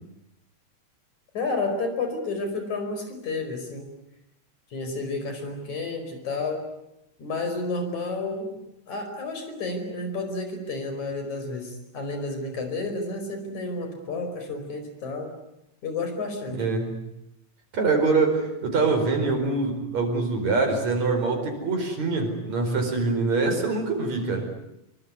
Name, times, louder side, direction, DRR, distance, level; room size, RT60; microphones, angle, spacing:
voice 1, 1.3-3.9 4.7-6.6 7.2-8.5 8.9-15.3 15.8-16.6, left 3 dB, 75° left, 6 dB, 6.4 m, -31 dB
voice 2, 16.5-17.0 17.7-24.5, right 3 dB, 70° right, 4 dB, 5.9 m, -24 dB
25.5 x 23.5 x 9.7 m, 0.85 s
omnidirectional pair, 3.3 m